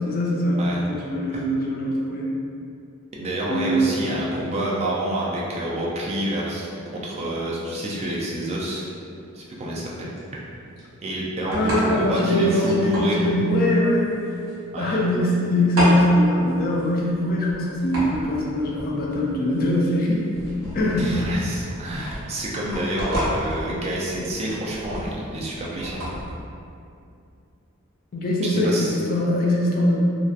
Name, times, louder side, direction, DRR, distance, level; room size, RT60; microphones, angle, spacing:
voice 1, 0.0-0.6 0.9-2.3 3.5-4.2 11.4-14.1 14.8-20.3 20.7-21.1 28.1-30.0, left 1 dB, 45° left, -4 dB, 0.4 m, -22 dB
voice 2, 3.2-8.8 9.3-10.1 11.0-13.3 14.7-15.0 21.0-26.0 28.4-29.0, right 1 dB, 30° right, -4 dB, 0.3 m, -28 dB
sound 1, 8.9-26.4, equal, 85° right, 1.0 m, -32 dB
2.6 x 2.1 x 2.4 m, 2.5 s
head